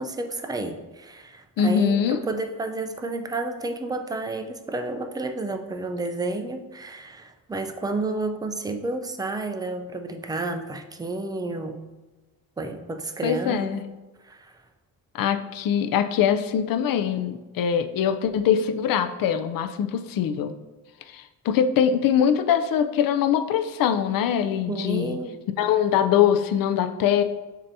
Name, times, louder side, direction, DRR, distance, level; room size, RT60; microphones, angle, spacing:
voice 1, 0.0-11.9 12.6-13.7 14.2-14.6 24.7-25.4, right 2 dB, 10° right, 6 dB, 0.4 m, -31 dB
voice 2, 1.6-2.2 13.2-13.8 15.1-20.5 21.1-25.2 25.6-27.2, left 8 dB, 70° left, 9 dB, 0.5 m, -23 dB
7.1 x 2.8 x 2.6 m, 1.2 s
cardioid pair, 90°, 36 cm